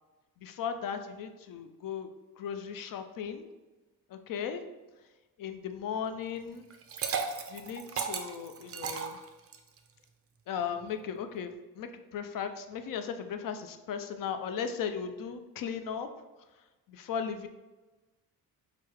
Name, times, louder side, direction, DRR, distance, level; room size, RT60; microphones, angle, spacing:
voice 1, 0.4-3.5 4.1-4.6 5.4-6.7 7.5-9.2 10.5-16.1 16.9-17.5, left 7 dB, 60° left, 8 dB, 0.5 m, -37 dB
Liquid, 6.7-9.8, right 6 dB, 40° right, 0.4 m, -35 dB
4.6 x 2.0 x 4.6 m, 1.1 s
cardioid pair, 125°, 38 cm